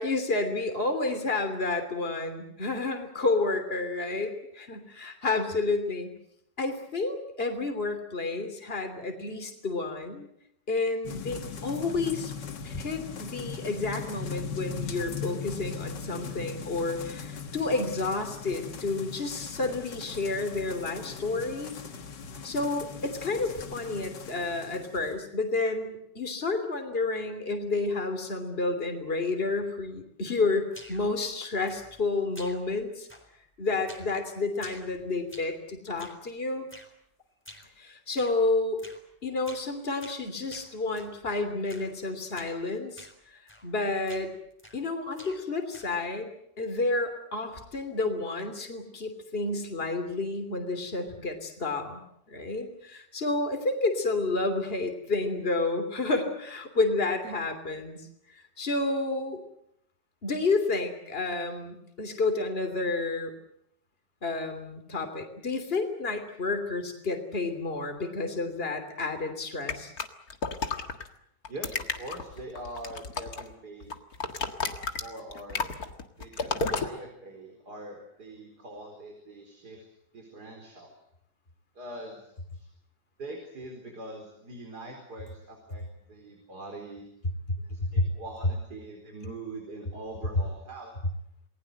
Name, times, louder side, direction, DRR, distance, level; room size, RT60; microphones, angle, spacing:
voice 1, 0.0-6.1 6.6-10.3 10.7-12.3 12.6-21.7 22.4-33.1 33.6-36.7 37.8-38.8 39.2-43.1 43.3-44.3 44.7-46.3 46.6-52.0 52.3-58.0 58.3-59.4 60.2-63.3 64.2-69.9, left 3 dB, 35° left, 6 dB, 3.3 m, -30 dB
sound 1, 11.0-25.2, left 5 dB, 80° left, 2.3 m, -39 dB
sound 2, 30.7-31.2 31.7-32.1 32.3-32.8 33.1-33.5 33.9-34.2 34.5-35.6 36.0-36.3 36.7-36.9 37.4-37.7 38.2-38.4 38.8-39.1 39.4-39.7 40.0-41.2 41.7-42.0 42.3-42.6 43.0-43.2 43.5-43.8 44.1-44.9 45.1-46.0, equal, 5° left, 3.9 m, -49 dB
sound 3, 69.7-71.1 71.4-73.5 73.8-76.9, left 4 dB, 60° left, 2.2 m, -32 dB
voice 2, 71.5-73.9 75.0-75.7 76.2-79.9 80.1-81.0 81.7-82.7 83.2-87.1 87.6-90.9, right 1 dB, 65° right, 2 dB, 4.9 m, -43 dB
28.5 x 20.0 x 7.8 m, 0.75 s
omnidirectional pair, 1.9 m